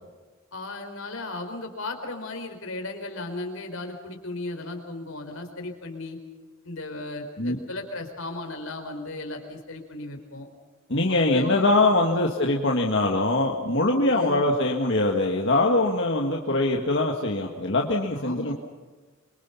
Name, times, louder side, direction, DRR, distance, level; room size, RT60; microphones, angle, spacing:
voice 1, 0.5-6.2 6.6-10.5 11.1-11.7 14.1-14.5 16.4-16.6 18.1-18.5, left 2 dB, 80° left, 4 dB, 4.5 m, -36 dB
voice 2, 10.9-18.5, left 2 dB, 60° left, 0 dB, 2.0 m, -23 dB
27.5 x 24.0 x 5.9 m, 1.4 s
head